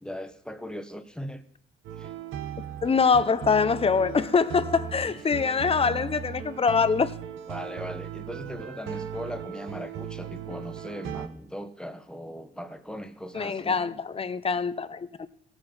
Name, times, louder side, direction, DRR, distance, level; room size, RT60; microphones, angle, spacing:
voice 1, 0.0-1.4 2.0-2.1 5.1-5.4 7.5-13.9, equal, 5° left, 1.0 m, -39 dB
sound 1, 1.8-11.3, right 9 dB, 80° right, 1.0 m, -38 dB
voice 2, 2.8-7.1 13.3-15.3, left 5 dB, 30° left, 0.7 m, -24 dB
17.5 x 7.8 x 4.3 m
cardioid pair, 90°, 20 cm